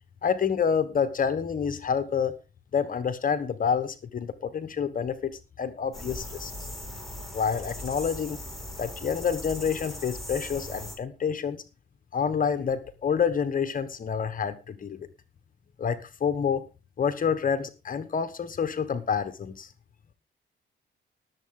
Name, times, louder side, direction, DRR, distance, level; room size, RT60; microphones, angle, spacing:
voice 1, 0.2-2.4 2.7-5.3 5.6-6.5 7.3-8.4 8.8-11.6 12.1-15.1 15.8-16.6 17.0-19.7, left 7 dB, 45° left, 11 dB, 1.3 m, -28 dB
sound 1, 5.9-11.0, left 1 dB, ahead, 5.8 m, -39 dB
19.0 x 7.7 x 3.8 m, 0.29 s
cardioid pair, 90°, 20 cm